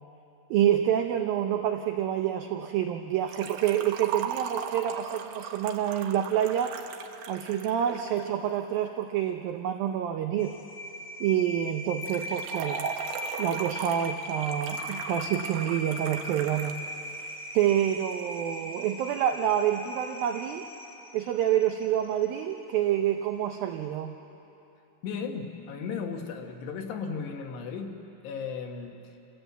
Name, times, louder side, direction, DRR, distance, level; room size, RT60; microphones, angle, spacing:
voice 1, 0.5-6.8 7.3-10.6 11.2-12.9 13.4-16.8 17.2-20.7 21.1-24.1, right 10 dB, 90° right, 5 dB, 2.0 m, -27 dB
Liquid, 3.3-8.3 12.0-16.8 17.1-17.2 18.1-18.2, right 8 dB, 70° right, 2.4 m, -38 dB
sound 1, 10.4-22.4, equal, 45° left, 1.4 m, -39 dB
voice 2, 25.0-28.0 28.2-29.0, left 5 dB, 70° left, 3 dB, 3.4 m, -35 dB
28.0 x 17.0 x 8.2 m, 3.0 s
omnidirectional pair, 5.2 m